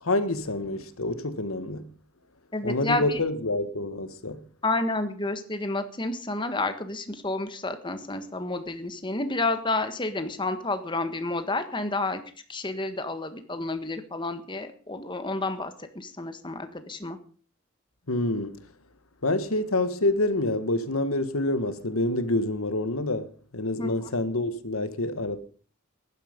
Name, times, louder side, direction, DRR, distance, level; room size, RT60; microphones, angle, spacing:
voice 1, 0.0-1.9 2.6-4.4 18.1-18.6 19.2-25.4, left 2 dB, 80° left, 1.6 m, -27 dB
voice 2, 2.5-3.2 4.6-12.2 12.5-17.2 23.8-24.1, left 2 dB, 20° left, 1.6 m, -30 dB
15.0 x 11.5 x 5.3 m
head